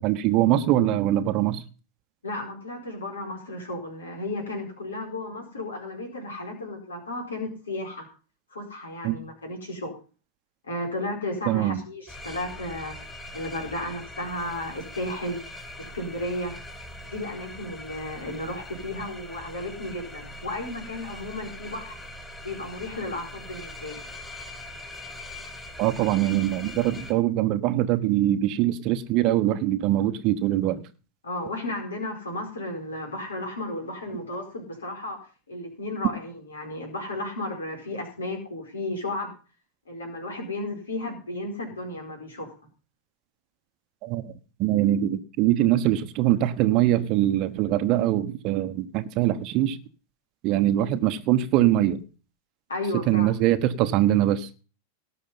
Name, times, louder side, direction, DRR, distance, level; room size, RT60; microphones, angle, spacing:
voice 1, 0.0-1.6 9.0-9.1 11.5-11.8 25.8-30.8 44.0-44.3 44.6-49.8 50.4-52.0 53.1-54.5, right 13 dB, 40° right, 1.1 m, -23 dB
voice 2, 2.2-8.1 8.5-9.9 10.6-13.1 13.3-15.4 15.8-16.5 17.1-21.9 22.4-24.0 31.2-35.2 35.5-39.3 39.9-42.5 52.7-53.3, left 1 dB, 70° left, 4.7 m, -34 dB
sound 1, 12.1-27.1, left 1 dB, 15° left, 3.0 m, -42 dB
18.5 x 6.5 x 5.6 m
figure-of-eight pair, 90°, 0 cm